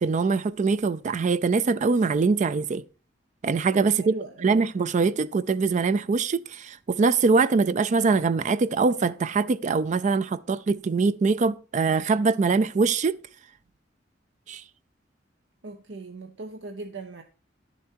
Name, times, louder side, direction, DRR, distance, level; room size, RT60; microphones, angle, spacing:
voice 1, 0.0-2.8 3.4-4.2 4.4-13.2 14.5-14.6, right 4 dB, 40° right, 0.4 m, -23 dB
voice 2, 4.0-4.6 15.6-17.2, right 3 dB, 75° right, 0.8 m, -39 dB
10.5 x 7.1 x 4.5 m
head